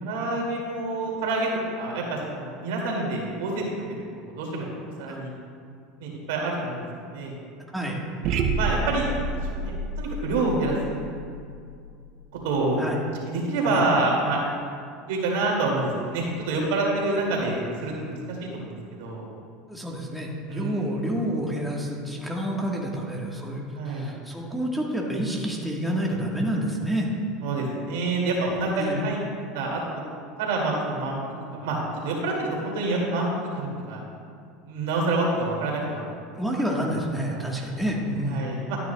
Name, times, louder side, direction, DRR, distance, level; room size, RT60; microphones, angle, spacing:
voice 1, 0.0-3.7 4.1-4.7 5.0-5.3 6.0-7.3 8.2-11.0 12.4-12.9 13.3-14.4 15.1-19.3 20.5-21.1 23.8-24.1 27.4-29.2 29.5-29.8 30.4-31.2 31.5-34.0 34.7-36.0 37.2-37.4 38.3-38.8, right 2 dB, 80° right, -2 dB, 2.2 m, -27 dB
sound 1, 8.2-12.4, right 3 dB, 55° right, 0.8 m, -30 dB
voice 2, 19.7-27.1 28.7-29.0 36.3-38.5, equal, ahead, -2 dB, 1.3 m, -29 dB
12.0 x 9.5 x 2.3 m, 2.3 s
supercardioid pair, 105°, 0 cm